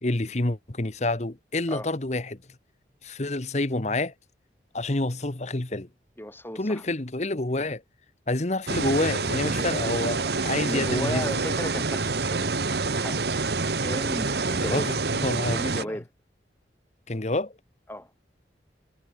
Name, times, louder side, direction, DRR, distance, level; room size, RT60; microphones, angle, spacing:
voice 1, 0.0-2.4 3.0-4.1 4.7-5.9 6.5-7.8 8.3-11.4 14.6-16.0 17.1-17.5, left 2 dB, 40° left, 1.3 m, -28 dB
voice 2, 6.2-6.8 9.6-9.8 10.6-12.6 12.9-13.3 13.8-14.9 15.5-16.1 17.9-18.1, equal, 15° left, 7.0 m, -35 dB
sound 1, 8.7-15.8, right 3 dB, 65° right, 1.4 m, -27 dB
head